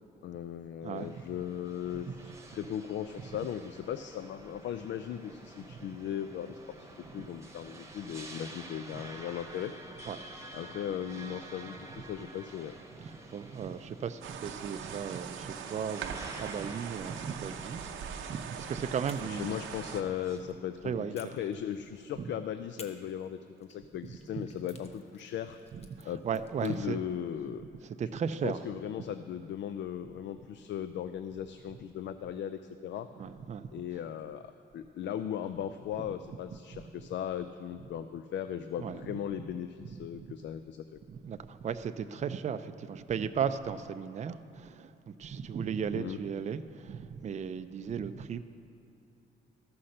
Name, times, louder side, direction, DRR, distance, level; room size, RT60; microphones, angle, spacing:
voice 1, 0.2-9.7 10.5-12.7 19.2-25.6 26.0-27.6 28.4-33.1 33.7-41.0 46.0-46.2, left 9 dB, 65° left, 10 dB, 0.4 m, -38 dB
voice 2, 0.8-1.1 2.1-2.2 5.7-5.8 7.2-7.3 10.1-10.2 13.0-19.6 20.8-21.3 22.2-22.3 25.7-27.0 27.8-28.6 33.2-33.7 36.7-36.8 38.8-39.0 40.2-40.3 41.1-48.4, right 7 dB, 35° right, 10 dB, 0.4 m, -36 dB
sound 1, 1.0-20.4, right 2 dB, 15° right, 1.1 m, -49 dB
sound 2, 14.2-20.0, right 7 dB, 85° right, 0.8 m, -41 dB
sound 3, 19.0-20.6 21.1-22.2 22.8-26.8, left 3 dB, 30° left, 0.9 m, -56 dB
13.0 x 5.7 x 6.5 m, 2.8 s
cardioid pair, 90°, 20 cm